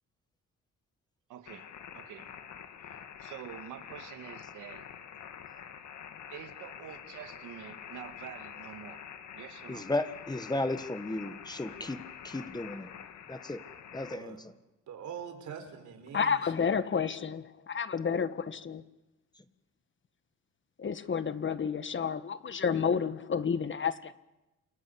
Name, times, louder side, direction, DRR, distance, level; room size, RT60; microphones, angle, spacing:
voice 1, 1.3-1.7 1.9-2.3 2.8-4.9 6.3-9.0 9.3-9.9, right 11 dB, 85° right, 2.1 m, -47 dB
sound 1, 1.5-14.2, left 8 dB, 65° left, 2.5 m, -47 dB
voice 2, 9.7-12.9 13.3-13.6 13.9-14.5, left 2 dB, 15° left, 1.6 m, -34 dB
voice 3, 14.1-14.4 14.9-16.7, right 7 dB, 70° right, 5.3 m, -44 dB
voice 4, 16.1-18.8 20.8-24.1, left 6 dB, 40° left, 1.5 m, -30 dB
29.0 x 22.5 x 8.6 m
cardioid pair, 90°, 30 cm